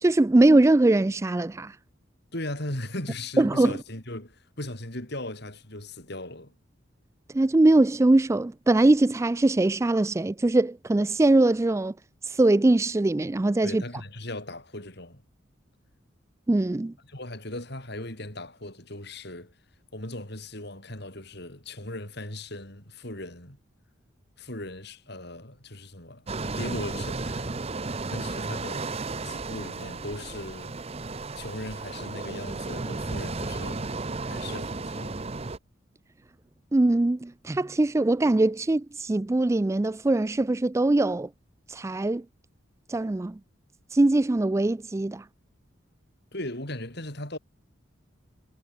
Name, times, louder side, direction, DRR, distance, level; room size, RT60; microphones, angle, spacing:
voice 1, 0.0-1.8 3.4-3.7 7.3-11.9 12.2-13.8 16.5-16.9 36.7-41.3 41.7-42.2 42.9-43.4 43.9-45.2, right 2 dB, 15° right, 0.3 m, -22 dB
voice 2, 2.3-6.5 13.6-15.2 17.0-19.6 19.9-23.6 24.4-26.3 26.6-28.9 29.2-30.8 31.0-33.9 34.2-35.2 46.3-47.4, left 1 dB, 55° left, 7.1 m, -38 dB
sound 1, 26.3-35.6, right 3 dB, 30° right, 0.8 m, -34 dB
head